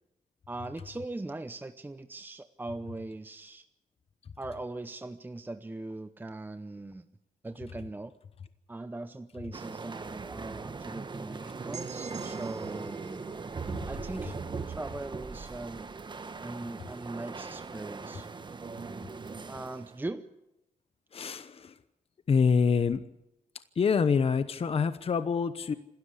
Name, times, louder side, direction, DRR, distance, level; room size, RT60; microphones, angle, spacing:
voice 1, 0.5-3.6 4.4-7.0 7.4-8.1 8.7-13.2 13.9-14.4 14.8-15.9 16.4-18.3 19.5-20.3, right 2 dB, 15° right, 10 dB, 0.8 m, -40 dB
sound 1, 9.5-20.0, right 4 dB, 35° right, 1.2 m, -40 dB
sound 2, 11.7-15.5, right 6 dB, 55° right, 1.0 m, -50 dB
voice 2, 21.1-21.8 22.3-23.0 23.7-25.7, left 5 dB, 45° left, 12 dB, 1.0 m, -26 dB
27.5 x 13.0 x 8.3 m, 0.91 s
cardioid pair, 95°, 14 cm